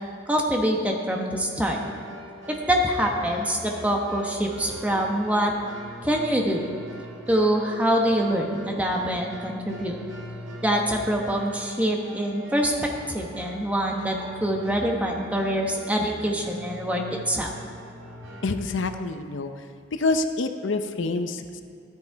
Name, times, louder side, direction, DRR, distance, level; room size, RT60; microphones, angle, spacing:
voice 1, 0.3-1.8 2.5-5.5 6.0-6.7 7.3-10.0 10.6-17.5, equal, 5° right, 1 dB, 1.0 m, -25 dB
sound 1, 1.7-18.5, equal, 80° right, 1.8 m, -42 dB
voice 2, 18.4-19.6 19.9-21.6, left 3 dB, 80° left, 8 dB, 0.6 m, -27 dB
13.0 x 9.5 x 4.6 m, 2.1 s
head